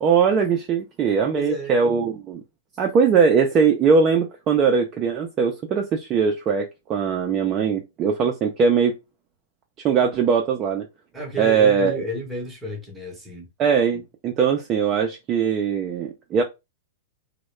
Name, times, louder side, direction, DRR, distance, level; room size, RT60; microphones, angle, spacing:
voice 1, 0.0-2.4 2.8-9.0 9.8-10.9 11.4-12.0 13.6-16.4, right 6 dB, 25° right, 0.4 m, -20 dB
voice 2, 1.3-1.8 11.1-13.5, equal, 5° right, 0.8 m, -32 dB
2.3 x 2.1 x 3.0 m
hypercardioid pair, 150°, 0 cm